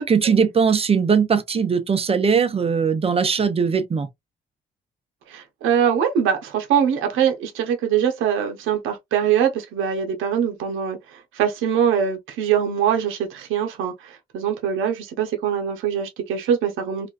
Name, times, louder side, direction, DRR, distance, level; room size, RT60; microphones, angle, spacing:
voice 1, 0.1-4.1, right 6 dB, 30° right, 0.6 m, -20 dB
voice 2, 5.3-11.0 11.4-17.1, right 8 dB, 85° right, 0.7 m, -22 dB
2.5 x 2.2 x 2.3 m
cardioid pair, 90°, 20 cm